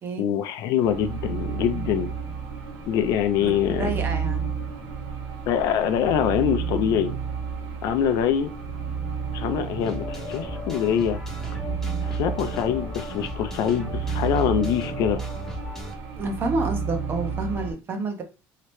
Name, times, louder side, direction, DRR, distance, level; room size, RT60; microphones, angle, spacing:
voice 1, 0.2-2.1 2.9-3.9 5.5-7.2 7.8-8.5 9.3-11.2 12.0-15.2, left 9 dB, 65° left, 0.4 m, -24 dB
sound 1, 0.8-17.7, right 6 dB, 75° right, 1.1 m, -32 dB
voice 2, 3.4-4.5 16.2-18.2, right 3 dB, 35° right, 0.8 m, -29 dB
sound 2, 9.8-15.9, left 1 dB, 5° left, 0.8 m, -36 dB
3.1 x 2.8 x 3.0 m
cardioid pair, 130°, 6 cm